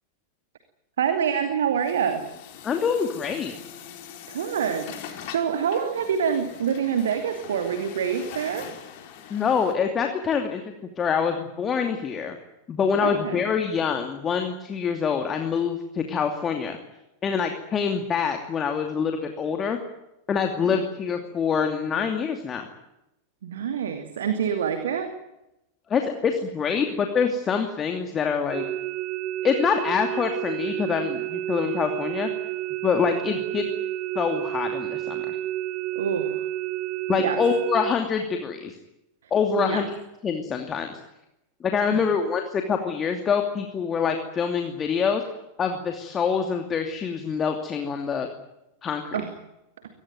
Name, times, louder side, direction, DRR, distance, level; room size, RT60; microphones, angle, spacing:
voice 1, 1.0-2.2 4.3-8.7 13.0-13.4 20.6-20.8 23.4-25.1 35.9-36.5 37.2-37.4 39.6-39.8 41.9-42.0 49.1-49.3, right 7 dB, 60° right, 8 dB, 2.5 m, -26 dB
Truck, 1.7-9.7, left 9 dB, 50° left, 4.8 m, -42 dB
voice 2, 2.6-3.5 9.3-10.6 11.0-12.4 12.7-16.8 17.2-19.8 20.3-22.7 25.9-28.6 29.4-32.3 32.8-33.7 34.1-35.4 37.1-38.8 39.3-39.9 40.2-40.9 41.6-45.2 45.6-48.3 48.8-49.2, left 6 dB, 25° left, 5 dB, 2.6 m, -25 dB
sound 1, 28.5-37.9, right 14 dB, 35° right, 1.1 m, -30 dB
24.0 x 19.5 x 9.4 m, 0.92 s
figure-of-eight pair, 90°, 0 cm